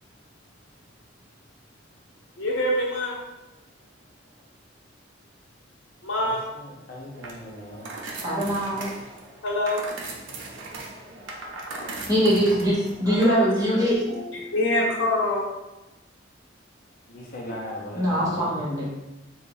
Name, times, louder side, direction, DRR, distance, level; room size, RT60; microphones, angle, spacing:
voice 1, 2.4-3.2 6.0-6.4 9.4-9.8 13.1-13.4 13.7-15.4 17.6-17.8, left 1 dB, 80° left, -2 dB, 0.9 m, -26 dB
voice 2, 6.2-7.9 17.1-18.6, equal, 45° left, -2 dB, 0.7 m, -39 dB
sound 1, 7.1-13.3, right 2 dB, 80° right, 0.6 m, -38 dB
voice 3, 8.2-8.9 12.1-14.0 17.9-18.9, equal, 20° right, -8 dB, 1.2 m, -22 dB
3.7 x 2.3 x 3.9 m, 1.0 s
head